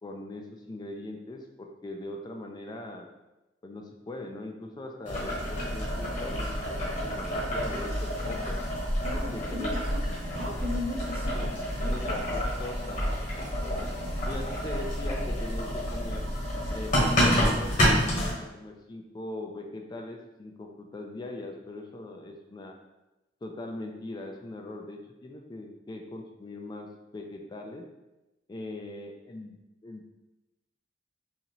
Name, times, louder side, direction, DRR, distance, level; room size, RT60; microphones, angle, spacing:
voice 1, 0.0-3.1 3.6-8.6 9.1-9.7 11.2-13.9 14.3-16.3 16.7-22.8 23.4-27.8 28.5-29.6 29.8-30.1, left 2 dB, 25° left, 2 dB, 0.3 m, -41 dB
Boiling, 5.1-18.3, equal, 45° left, 1.1 m, -29 dB
voice 2, 9.0-11.9, left 2 dB, 55° right, 0 dB, 0.7 m, -37 dB
4.0 x 2.7 x 2.9 m, 0.99 s
head